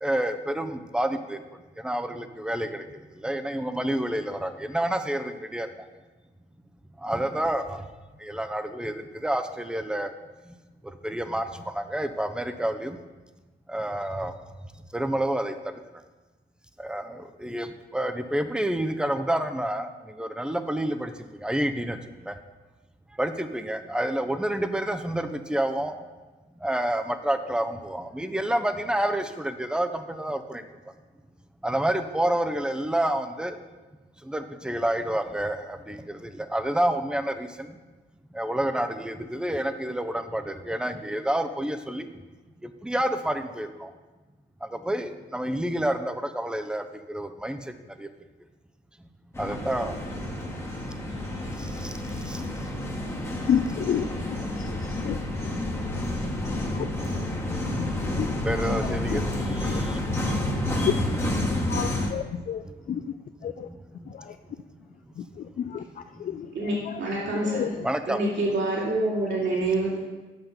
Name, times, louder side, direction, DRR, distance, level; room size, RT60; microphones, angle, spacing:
voice 1, 0.0-1.4 1.8-2.8 3.2-5.7 7.0-7.8 8.2-10.1 11.0-11.4 11.8-13.0 13.7-14.3 14.9-15.5 16.8-17.7 17.9-19.9 20.2-21.1 21.4-22.0 22.3-22.4 23.2-25.9 26.6-30.6 31.6-33.5 34.3-37.5 38.4-42.1 42.8-43.9 44.9-46.8 47.1-47.6 49.4-49.9 52.3-52.4 54.3-54.4 58.4-59.2 59.5-60.0 67.8-68.2, right 1 dB, 5° right, 8 dB, 0.6 m, -28 dB
sound 1, 49.3-62.1, left 1 dB, 15° left, 1.2 m, -29 dB
voice 2, 53.5-54.7 55.0-55.2 56.7-56.8 57.8-58.3 59.7-59.8 60.8-60.9 61.7-62.6 62.9-63.0 63.4-63.7 65.2-65.3 65.6-65.8 66.2-66.5 67.5-67.7, left 9 dB, 45° left, 8 dB, 0.4 m, -29 dB
voice 3, 66.5-67.6 68.1-70.0, right 2 dB, 65° right, -5 dB, 2.5 m, -26 dB
8.0 x 5.8 x 5.3 m, 1.2 s
cardioid pair, 90°, 20 cm